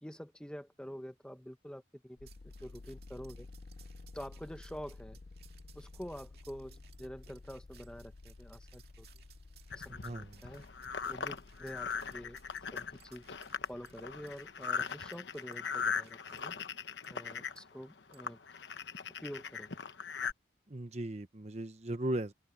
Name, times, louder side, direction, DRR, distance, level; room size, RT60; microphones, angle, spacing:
voice 1, 0.0-3.5 4.1-5.2 5.7-9.1 9.7-10.6 11.0-12.4 12.7-13.2 13.7-16.5 17.1-18.4 19.2-19.7, equal, 5° left, 1.2 m, -47 dB
sound 1, 2.2-14.8, left 3 dB, 50° left, 0.5 m, -54 dB
sound 2, 2.3-16.4 17.0-17.1 17.6-17.7 18.1-18.3, right 11 dB, 60° right, 2.5 m, -64 dB
sound 3, 9.7-20.3, left 6 dB, 75° left, 1.1 m, -39 dB
voice 2, 10.0-10.4 20.7-22.3, right 1 dB, 35° right, 0.9 m, -37 dB
open air
head